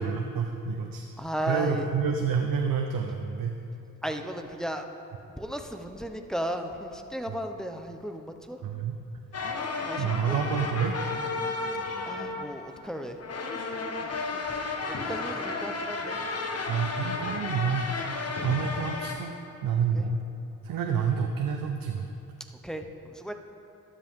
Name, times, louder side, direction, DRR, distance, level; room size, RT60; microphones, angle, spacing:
voice 1, 0.0-1.0 1.4-3.5 8.6-9.0 10.0-11.0 16.7-17.9 18.4-19.3 19.6-20.2 20.6-22.1, right 6 dB, 85° right, 3 dB, 0.8 m, -28 dB
voice 2, 1.2-1.8 4.0-4.9 5.4-8.6 9.7-10.4 12.0-13.2 14.0-16.2 19.9-20.1 22.6-23.3, equal, ahead, 5 dB, 0.9 m, -35 dB
sound 1, 9.3-19.2, left 3 dB, 45° left, 1.4 m, -33 dB
12.0 x 12.0 x 3.7 m, 2.6 s
cardioid pair, 65°, 33 cm